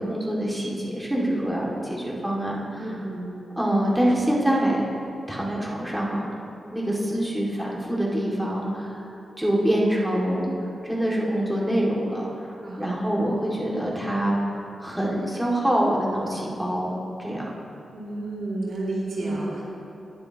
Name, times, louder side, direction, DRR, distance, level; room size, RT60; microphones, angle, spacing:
voice 1, 0.0-3.1 3.6-4.8 5.3-6.2 6.7-9.0 9.4-10.5 10.8-14.4 14.8-17.6 19.2-19.5, right 1 dB, 5° right, -4 dB, 2.1 m, -25 dB
voice 2, 2.8-3.3 12.6-13.1 17.9-19.6, right 2 dB, 75° right, -6 dB, 2.5 m, -32 dB
18.5 x 7.0 x 2.9 m, 2.7 s
cardioid pair, 65°, 0 cm